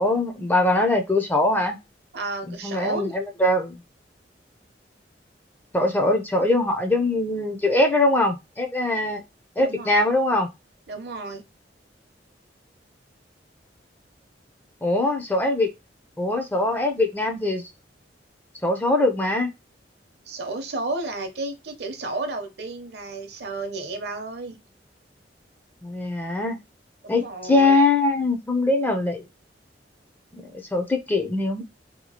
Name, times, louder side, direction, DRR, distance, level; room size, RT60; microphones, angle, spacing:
voice 1, 0.0-1.8 2.5-3.8 5.7-9.2 9.6-10.5 14.8-15.7 16.2-17.6 18.6-19.5 25.8-26.6 27.1-29.2 30.7-31.6, left 2 dB, 10° left, 0.4 m, -22 dB
voice 2, 2.1-3.2 9.6-10.0 10.9-11.5 20.3-24.6 27.0-27.8, right 2 dB, 65° right, 0.6 m, -32 dB
2.8 x 2.3 x 2.8 m
head